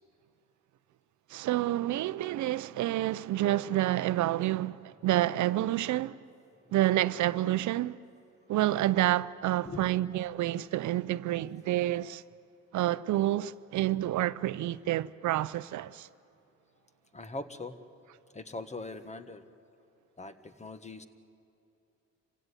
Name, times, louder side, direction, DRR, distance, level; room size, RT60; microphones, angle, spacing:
voice 1, 1.3-6.2 6.7-8.0 8.5-12.2 12.7-16.1, right 14 dB, 70° right, 0.6 m, -28 dB
voice 2, 17.1-17.8 18.3-19.4 20.2-21.1, left 2 dB, 25° left, 1.5 m, -41 dB
26.0 x 16.5 x 9.8 m
cardioid pair, 90°, 30 cm